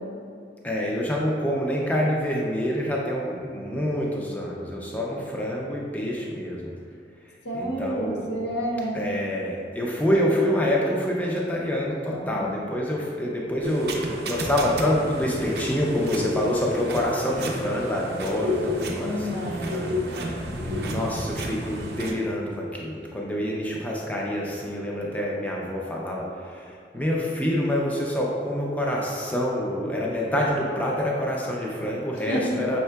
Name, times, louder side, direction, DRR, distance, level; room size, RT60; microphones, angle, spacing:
voice 1, 0.6-6.6 7.5-8.3 8.9-13.9 14.3-19.4 19.7-20.0 20.6-26.3 26.9-32.8, equal, 10° left, -3 dB, 0.4 m, -26 dB
voice 2, 7.4-9.0 12.1-12.5 18.9-20.4 32.3-32.6, equal, 80° left, -3 dB, 0.8 m, -30 dB
sound 1, 13.6-22.1, left 1 dB, 65° right, 0.5 m, -31 dB
5.5 x 3.6 x 2.2 m, 2.3 s
head